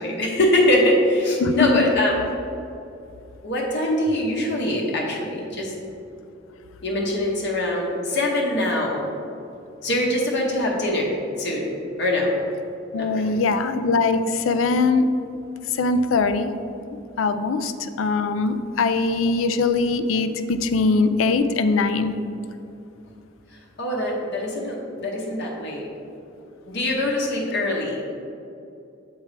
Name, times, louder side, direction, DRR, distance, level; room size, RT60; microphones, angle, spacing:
voice 1, 0.0-2.1 3.4-5.7 6.8-9.0 9.8-12.4 12.9-13.4 23.8-25.9 26.7-28.0, left 1 dB, 60° left, -2 dB, 0.9 m, -23 dB
voice 2, 1.4-1.9 12.9-15.1 15.7-16.5 17.2-17.7 18.0-22.2, left 3 dB, 80° left, 10 dB, 0.4 m, -21 dB
7.3 x 4.5 x 3.3 m, 2.7 s
head